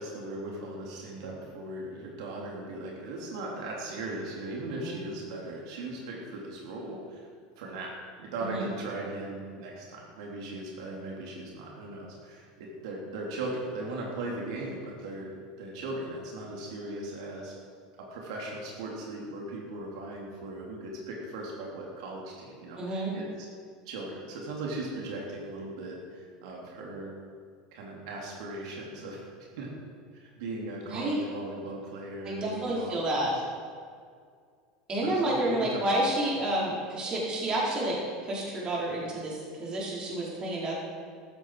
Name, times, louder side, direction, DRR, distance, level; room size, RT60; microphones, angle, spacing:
voice 1, 0.0-7.3 7.6-15.3 15.6-17.5 18.0-23.5 23.8-27.1 27.7-29.7 30.1-33.0 35.0-36.1, right 2 dB, 80° right, -2 dB, 3.0 m, -38 dB
voice 2, 8.4-8.7 22.8-23.2 30.9-31.2 32.2-33.3 34.9-40.7, right 1 dB, 30° right, -4 dB, 4.7 m, -30 dB
14.5 x 13.0 x 4.7 m, 2.1 s
supercardioid pair, 135°, 3 cm